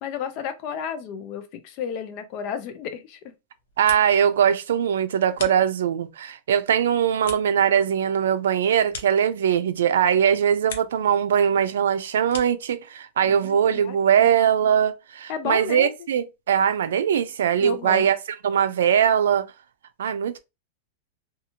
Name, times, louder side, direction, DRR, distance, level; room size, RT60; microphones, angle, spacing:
voice 1, 0.0-3.3 13.2-14.3 15.3-15.9 17.6-18.1, left 7 dB, 45° left, 0.6 m, -33 dB
sound 1, 3.5-4.4 4.7-6.1 6.5-9.8 10.2-11.1 11.4-12.7, left 5 dB, 80° left, 0.7 m, -42 dB
voice 2, 3.8-18.2 18.4-19.5 20.0-20.4, right 8 dB, 90° right, 0.4 m, -21 dB
2.7 x 2.4 x 2.8 m
supercardioid pair, 150°, 0 cm